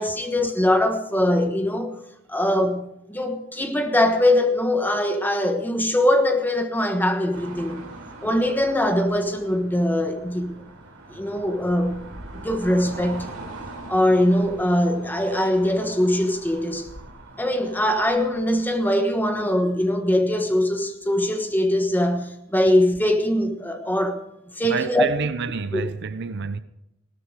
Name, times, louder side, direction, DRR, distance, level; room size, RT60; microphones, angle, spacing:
voice 1, 0.0-2.0 2.3-7.8 8.2-10.6 11.1-12.0 12.4-13.3 13.9-16.9 17.4-24.2 24.6-25.0 25.7-25.8, left 1 dB, 10° left, 1.3 m, -22 dB
sound 1, 7.3-18.8, right 2 dB, 85° right, 3.7 m, -42 dB
voice 2, 24.6-26.6, right 5 dB, 55° right, 0.6 m, -28 dB
17.0 x 13.0 x 4.8 m
head